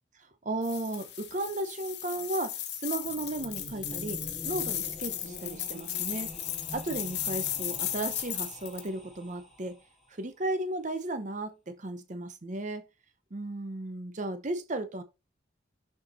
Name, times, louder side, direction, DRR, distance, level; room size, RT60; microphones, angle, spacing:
voice 1, 0.2-6.3 6.7-9.8 10.1-12.8 13.3-15.0, right 2 dB, 40° right, 0.7 m, -35 dB
sound 1, 0.6-8.9, left 11 dB, 60° left, 1.2 m, -36 dB
sound 2, 2.9-9.9, left 1 dB, ahead, 2.9 m, -46 dB
6.9 x 4.6 x 4.0 m
head